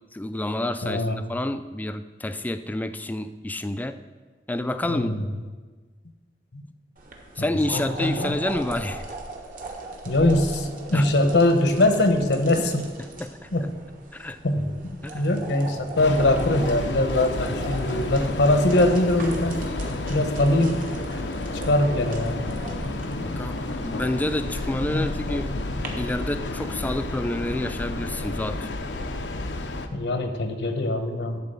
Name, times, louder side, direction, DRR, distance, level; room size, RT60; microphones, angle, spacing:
voice 1, 0.1-4.0 4.5-5.2 7.4-9.2 10.9-11.0 13.2-13.5 14.1-14.4 15.0-15.3 23.2-25.5 26.0-28.7, left 1 dB, 10° left, 11 dB, 0.3 m, -29 dB
voice 2, 0.8-1.2 4.8-5.2 6.5-6.6 7.4-8.4 10.0-12.9 13.5-13.7 14.4-14.7 15.1-19.6 20.1-20.9 21.7-22.4 24.9-25.1 29.9-31.4, left 1 dB, 70° left, 6 dB, 1.0 m, -22 dB
sound 1, 7.0-25.9, right 2 dB, 50° right, 1.3 m, -39 dB
Train, 16.0-29.9, left 2 dB, 85° left, 0.7 m, -31 dB
11.5 x 4.1 x 6.8 m, 1.4 s
head